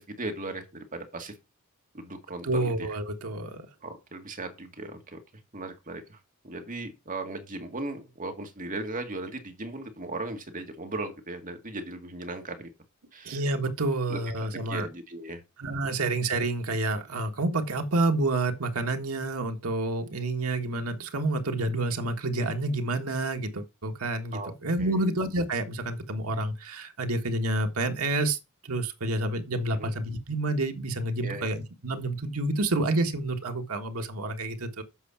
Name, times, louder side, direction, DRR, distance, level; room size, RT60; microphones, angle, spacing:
voice 1, 0.2-1.3 1.9-2.9 3.8-5.2 5.5-6.2 6.4-12.7 13.1-13.4 14.1-15.4 24.3-24.5 24.8-25.1 29.8-29.9 31.2-31.5, right 2 dB, 40° right, 2.0 m, -37 dB
voice 2, 2.4-3.7 13.2-14.9 15.6-28.4 28.6-34.8, right 2 dB, 80° right, 1.5 m, -29 dB
8.2 x 5.7 x 5.7 m
head